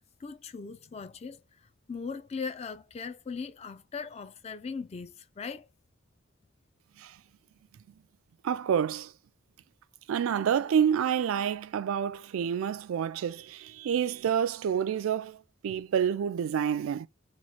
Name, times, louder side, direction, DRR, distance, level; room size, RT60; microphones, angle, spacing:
voice 1, 0.2-5.7, left 5 dB, 30° left, 0.3 m, -39 dB
voice 2, 8.4-9.1 10.1-15.4 15.6-17.1, right 8 dB, 75° right, 0.3 m, -28 dB
3.0 x 2.3 x 4.1 m
head